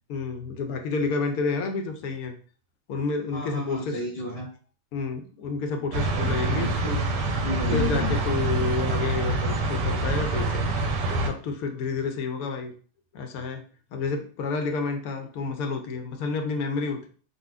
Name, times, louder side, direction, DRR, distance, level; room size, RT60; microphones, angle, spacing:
voice 1, 0.1-2.3 2.9-4.0 4.9-6.7 7.7-10.7 11.3-12.7 13.1-13.6 13.9-17.1, left 4 dB, 70° left, 5 dB, 0.9 m, -29 dB
voice 2, 3.3-4.5 6.4-8.2, left 2 dB, 45° left, -4 dB, 0.8 m, -33 dB
sound 1, 5.9-11.3, right 2 dB, 85° right, 1.3 m, -26 dB
3.9 x 2.4 x 2.4 m, 0.42 s
omnidirectional pair, 1.9 m